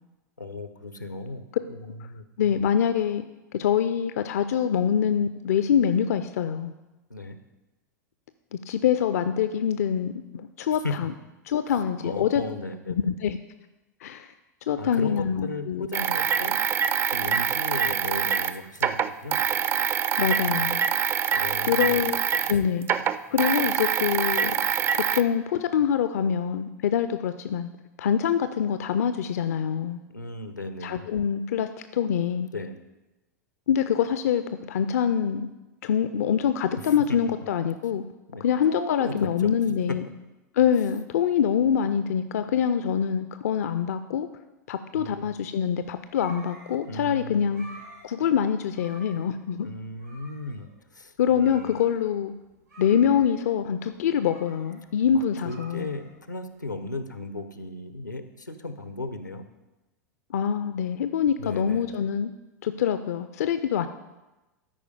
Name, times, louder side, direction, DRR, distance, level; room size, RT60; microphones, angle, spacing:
voice 1, 0.4-2.2 7.1-7.4 10.8-10.9 11.7-13.0 14.7-16.6 17.1-19.4 21.3-22.1 30.1-31.1 32.5-32.8 36.8-36.9 38.3-39.5 44.9-45.3 46.8-47.6 49.6-51.8 55.4-59.5 61.4-62.1, left 2 dB, 85° left, 10 dB, 0.7 m, -36 dB
voice 2, 2.4-3.3 3.5-6.7 8.5-11.1 11.5-12.4 12.9-13.4 14.0-14.3 14.7-15.9 20.2-20.8 21.6-22.2 22.5-22.9 23.3-24.5 24.9-27.7 28.0-30.0 30.8-32.5 33.7-35.5 35.8-38.1 38.4-40.1 40.5-44.3 44.7-47.6 48.0-49.7 51.2-52.3 52.8-55.9 60.3-62.3 62.6-63.9, left 8 dB, 55° left, 11 dB, 0.4 m, -25 dB
sound 1, 15.9-22.6 22.8-25.2, right 8 dB, 25° right, 0.4 m, -25 dB
sound 2, 45.6-56.6, right 1 dB, 80° right, 3.8 m, -50 dB
12.5 x 4.9 x 5.1 m, 1.1 s
figure-of-eight pair, 90°, 10 cm